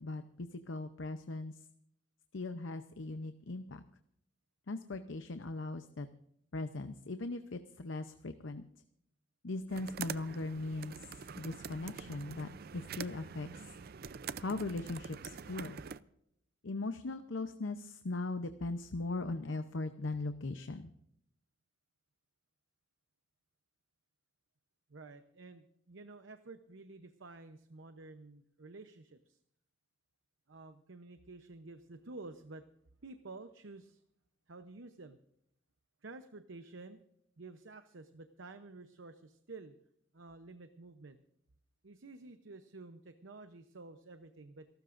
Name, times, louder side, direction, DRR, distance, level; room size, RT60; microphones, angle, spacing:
voice 1, 0.0-1.6 2.3-3.8 4.7-6.1 6.5-8.6 9.4-13.5 14.4-15.8 16.6-20.9, left 2 dB, 85° left, 9 dB, 0.8 m, -39 dB
sound 1, 9.7-16.0, right 6 dB, 55° right, 0.5 m, -45 dB
voice 2, 24.9-29.4 30.5-32.7 33.0-34.0 34.5-35.2 36.0-37.0 37.4-39.8 40.1-41.2 41.8-44.7, right 3 dB, 90° right, 9 dB, 0.8 m, -51 dB
28.0 x 13.0 x 2.6 m, 0.73 s
head